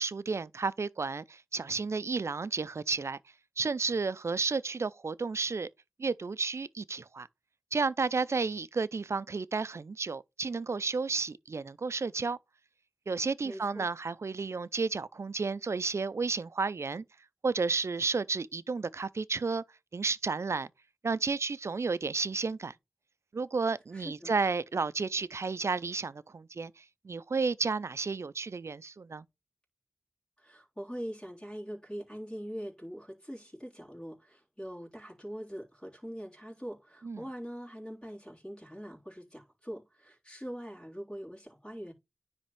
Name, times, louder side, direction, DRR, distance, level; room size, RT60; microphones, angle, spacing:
voice 1, 0.0-3.2 3.6-5.7 6.0-7.3 7.7-12.4 13.1-17.0 17.4-19.6 19.9-20.7 21.0-22.7 23.3-29.2 37.0-37.2, right 4 dB, 65° right, 0.4 m, -32 dB
voice 2, 13.4-13.9 23.9-24.3 30.4-41.9, equal, 15° left, 3.6 m, -43 dB
9.9 x 3.5 x 3.1 m
cardioid pair, 40°, 5 cm